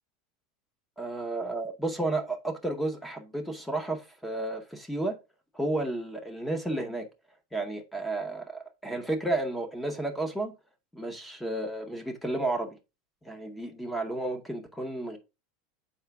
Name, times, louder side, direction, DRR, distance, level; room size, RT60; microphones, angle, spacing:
voice 1, 1.0-5.2 5.5-7.1 7.5-10.5 10.9-12.8 13.2-15.2, right 2 dB, 5° left, 0.8 m, -32 dB
7.0 x 5.0 x 3.4 m
supercardioid pair, 175°, 0 cm